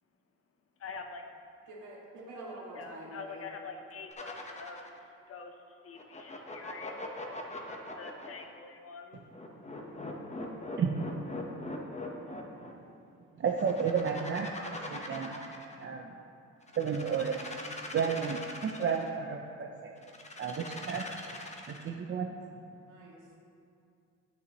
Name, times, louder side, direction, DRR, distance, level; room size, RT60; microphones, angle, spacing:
voice 1, 0.8-1.2 2.8-4.9 5.3-5.6 5.8-7.0 8.0-9.2, left 5 dB, 50° left, 4 dB, 0.9 m, -45 dB
voice 2, 1.7-3.5 22.9-23.4, right 1 dB, 75° right, -4 dB, 2.0 m, -46 dB
sound 1, 4.1-5.0 5.9-8.4 9.3-12.7 13.5-15.8 16.6-19.1 20.0-21.9, left 2 dB, 20° left, 1.0 m, -42 dB
voice 3, 13.4-14.5 14.9-15.4 15.8-16.1 16.8-17.4 17.9-19.9 20.4-21.0 21.7-22.3, right 6 dB, 40° right, 2 dB, 0.5 m, -32 dB
9.2 x 8.1 x 3.0 m, 2.5 s
cardioid pair, 90°, 30 cm